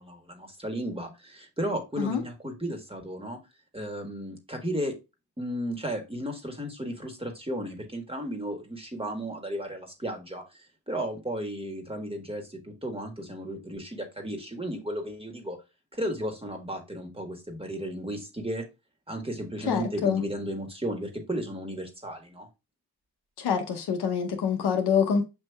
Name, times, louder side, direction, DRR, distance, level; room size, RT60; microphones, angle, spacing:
voice 1, 0.0-3.4 3.7-4.9 5.4-15.6 15.9-18.6 19.1-22.5, equal, 15° right, 1.5 m, -34 dB
voice 2, 19.7-20.2 23.4-25.2, left 6 dB, 70° left, 0.9 m, -26 dB
7.1 x 2.7 x 2.2 m
supercardioid pair, 50°, 41 cm